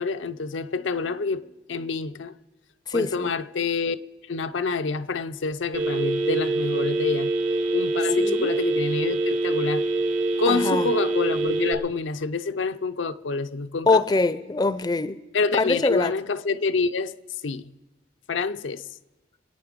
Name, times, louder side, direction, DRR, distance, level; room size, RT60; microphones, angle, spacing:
voice 1, 0.0-2.3 2.9-4.0 4.3-7.3 7.7-9.9 10.4-14.0 15.3-17.2 17.4-17.7 18.3-18.9, left 4 dB, 85° left, 0.6 m, -27 dB
voice 2, 2.9-3.3 8.2-8.5 10.5-10.9 13.9-15.2 15.6-16.1, left 3 dB, 20° left, 0.4 m, -23 dB
Telephone, 5.7-11.7, right 2 dB, 80° right, 1.8 m, -25 dB
25.5 x 8.7 x 5.1 m
head